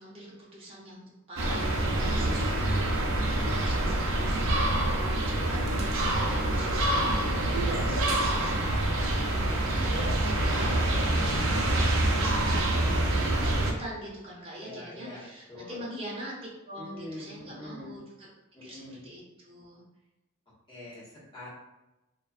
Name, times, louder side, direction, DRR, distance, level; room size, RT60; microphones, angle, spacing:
voice 1, 0.0-16.3 16.6-18.3 18.6-19.8, equal, 30° right, -6 dB, 0.7 m, -44 dB
sound 1, 1.4-13.7, right 1 dB, 70° right, 0.4 m, -26 dB
voice 2, 2.1-2.7 14.6-15.8 16.8-17.9 18.5-19.0 20.7-21.5, left 1 dB, 25° left, -9 dB, 1.0 m, -44 dB
2.4 x 2.2 x 2.4 m, 0.99 s
head